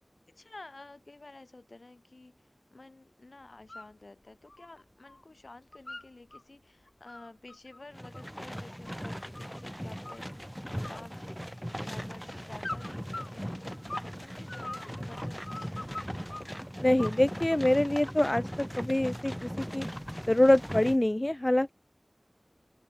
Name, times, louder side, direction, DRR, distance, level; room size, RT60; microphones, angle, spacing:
voice 1, 0.3-10.6 10.8-11.3 11.6-15.9, left 2 dB, 85° left, 7.6 m, -52 dB
sound 1, 3.5-3.9 4.3-5.2 5.5-6.4 6.9-9.6 10.0-10.5 10.8-11.8 12.6-14.1 14.5-16.5 17.0-17.7, left 2 dB, 55° left, 1.3 m, -43 dB
sound 2, 7.9-21.0, equal, ahead, 1.1 m, -39 dB
voice 2, 16.8-18.5 18.8-19.9 20.3-21.7, left 1 dB, 35° left, 0.3 m, -25 dB
wide cardioid pair, 40°, 0 cm